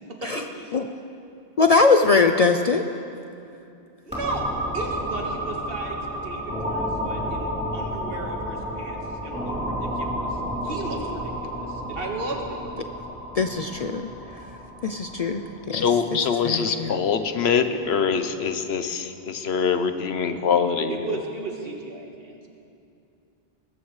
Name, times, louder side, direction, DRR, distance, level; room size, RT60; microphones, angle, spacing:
voice 1, 0.1-0.7 4.1-12.6 20.9-22.4, right 3 dB, 65° right, 0 dB, 1.8 m, -35 dB
voice 2, 1.6-2.8 13.3-14.1 14.8-15.9 16.1-16.9, left 4 dB, 45° left, 6 dB, 0.5 m, -21 dB
sound 1, 4.1-17.7, equal, 5° right, 3.5 m, -31 dB
voice 3, 15.7-21.2, left 6 dB, 75° left, 9 dB, 1.1 m, -24 dB
20.0 x 15.0 x 3.2 m, 2.6 s
omnidirectional pair, 1.1 m